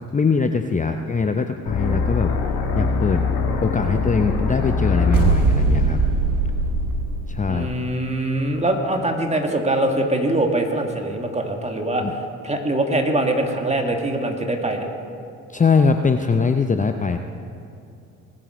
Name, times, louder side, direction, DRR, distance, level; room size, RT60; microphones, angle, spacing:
voice 1, 0.1-2.4 2.8-3.2 3.6-6.0 7.3-7.7 12.0-12.1 15.5-17.2, left 5 dB, 20° left, 7 dB, 0.6 m, -21 dB
sound 1, 1.7-7.6, left 4 dB, 75° left, 1.7 m, -24 dB
sound 2, 5.1-7.9, right 5 dB, 70° right, 1.1 m, -21 dB
voice 2, 7.5-12.0 12.4-14.9, right 1 dB, 20° right, 3 dB, 2.1 m, -23 dB
20.0 x 7.7 x 5.1 m, 2.6 s
hypercardioid pair, 50°, 36 cm